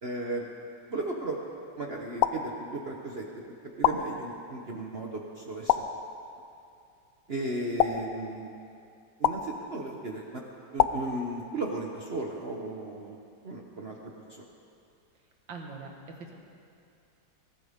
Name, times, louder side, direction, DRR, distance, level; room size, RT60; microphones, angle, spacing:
voice 1, 0.0-0.5 0.9-1.4 1.8-3.4 3.8-5.8 7.3-8.5 9.2-10.4 10.7-13.2 13.4-14.4, right 2 dB, 40° right, 0 dB, 1.0 m, -35 dB
sound 1, 2.2-3.1 3.8-4.7 5.7-6.5 7.8-8.7 9.2-10.0 10.8-11.8, left 10 dB, 75° left, 0.8 m, -29 dB
voice 2, 15.5-16.3, right 3 dB, 85° right, 1 dB, 2.3 m, -42 dB
21.5 x 13.5 x 3.6 m, 2.5 s
omnidirectional pair, 2.0 m